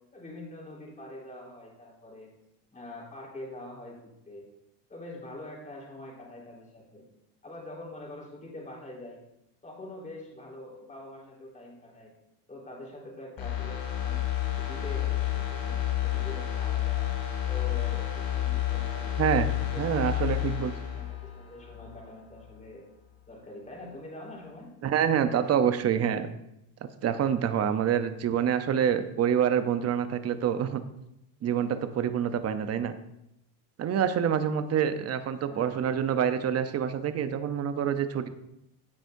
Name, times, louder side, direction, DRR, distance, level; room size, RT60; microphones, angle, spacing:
voice 1, 0.1-2.3 2.7-4.5 4.9-7.0 7.4-9.2 9.6-12.1 12.5-14.3 14.6-17.1 17.5-20.5 20.9-22.8 23.3-24.7 35.4-36.2, left 1 dB, 15° left, -4 dB, 4.0 m, -44 dB
sound 1, 13.4-22.0 22.4-22.5, left 13 dB, 50° left, 2.9 m, -30 dB
voice 2, 19.2-19.5 19.8-20.7 24.8-26.3 26.8-30.8 31.4-32.9 33.8-38.3, right 8 dB, 35° right, 10 dB, 0.8 m, -26 dB
16.0 x 8.2 x 2.7 m, 0.82 s
cardioid pair, 135°, 45 cm